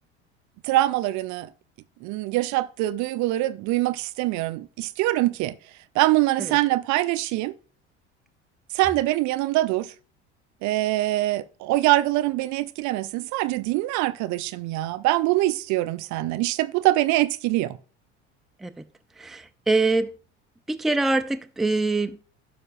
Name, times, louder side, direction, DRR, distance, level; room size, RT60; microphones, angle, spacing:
voice 1, 0.6-1.5 2.0-5.6 5.9-7.5 8.7-9.9 10.6-17.8, right 17 dB, 55° right, 0.6 m, -24 dB
voice 2, 19.2-20.1 20.7-22.2, right 3 dB, ahead, 0.5 m, -24 dB
12.0 x 5.9 x 2.5 m
hypercardioid pair, 75°, 35 cm